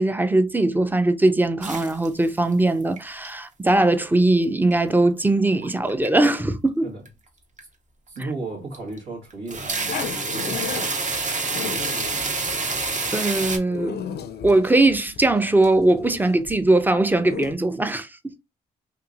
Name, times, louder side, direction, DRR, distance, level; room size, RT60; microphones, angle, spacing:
voice 1, 0.0-6.9 12.2-12.3 13.1-14.0 14.4-18.4, right 2 dB, 10° right, 0.4 m, -20 dB
sound 1, 1.6-2.5 2.8-3.3 3.7-4.3 4.7-4.8 5.6-6.1 6.3-6.5 7.1-7.2 7.6-7.7 8.2-8.3 8.7-9.0 9.3-13.6, right 3 dB, 40° right, 0.8 m, -27 dB
voice 2, 8.1-11.1, right 2 dB, 85° right, 1.5 m, -35 dB
Growling, 9.9-17.5, left 7 dB, 60° left, 0.4 m, -35 dB
2.9 x 2.6 x 2.4 m
supercardioid pair, 55°, 19 cm